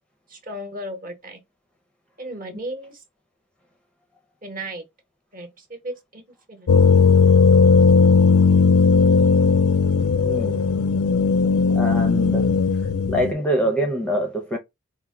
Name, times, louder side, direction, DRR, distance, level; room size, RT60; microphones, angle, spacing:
voice 1, 0.3-1.4 2.2-3.0 4.4-4.8 5.3-6.2 6.5-6.7, right 1 dB, 40° right, 0.9 m, -35 dB
sound 1, 6.7-13.3, left 5 dB, 65° left, 0.4 m, -17 dB
voice 2, 10.2-10.6 11.7-12.5 13.1-14.6, equal, 5° left, 0.5 m, -24 dB
4.3 x 2.1 x 3.7 m
head